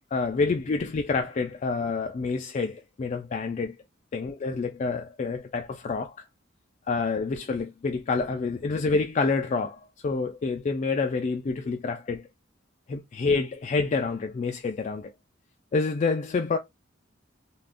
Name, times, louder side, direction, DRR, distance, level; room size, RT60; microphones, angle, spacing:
voice 1, 0.1-3.7 4.1-6.1 6.9-12.3 12.9-15.1 15.7-16.6, left 4 dB, 40° left, 0.3 m, -28 dB
3.6 x 2.4 x 2.4 m
head